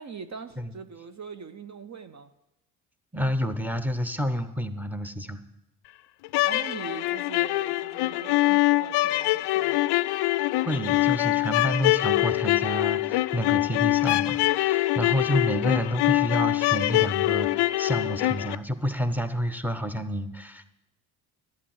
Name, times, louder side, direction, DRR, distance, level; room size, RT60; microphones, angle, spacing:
voice 1, 0.0-2.3 6.4-10.0, right 5 dB, 35° right, 9 dB, 0.8 m, -42 dB
voice 2, 3.1-5.4 10.5-20.8, equal, 5° right, 10 dB, 1.0 m, -29 dB
sound 1, 6.2-18.6, left 18 dB, 55° left, 0.5 m, -24 dB
11.0 x 8.1 x 7.3 m, 0.92 s
hypercardioid pair, 55°, 49 cm